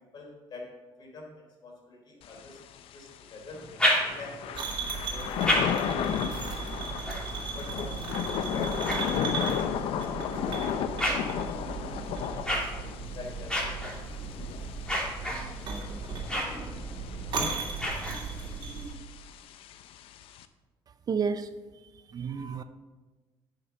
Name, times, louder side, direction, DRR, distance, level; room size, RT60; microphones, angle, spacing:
voice 1, 0.1-0.7 1.0-2.6 2.9-3.1 3.3-3.6 4.0-4.6 5.1-6.0 7.5-9.1 9.4-12.7 13.1-14.1, left 2 dB, 50° left, -1 dB, 4.0 m, -46 dB
Thunder / Rain, 2.2-20.5, left 9 dB, 70° left, 0.6 m, -35 dB
sound 1, 3.5-4.5 5.1-9.7 10.3-18.6, equal, 10° left, 3.1 m, -34 dB
sound 2, 4.5-18.9, right 4 dB, 55° right, 2.8 m, -36 dB
voice 2, 21.1-21.5 22.1-22.6, right 6 dB, 40° right, 11 dB, 0.6 m, -30 dB
9.6 x 6.7 x 6.1 m, 1.2 s
cardioid pair, 90°, 10 cm